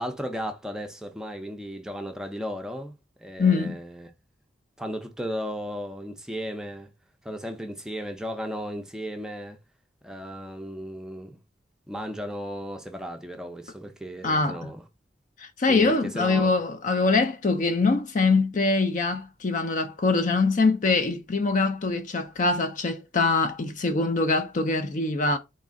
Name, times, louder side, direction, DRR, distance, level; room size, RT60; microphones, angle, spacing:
voice 1, 0.0-4.1 4.8-6.9 7.2-9.6 10.0-11.4 11.9-14.8 15.7-16.5, equal, 5° right, 0.5 m, -35 dB
voice 2, 3.4-3.8 14.2-14.7 15.4-25.4, left 3 dB, 45° left, 0.5 m, -23 dB
4.1 x 2.4 x 3.6 m
head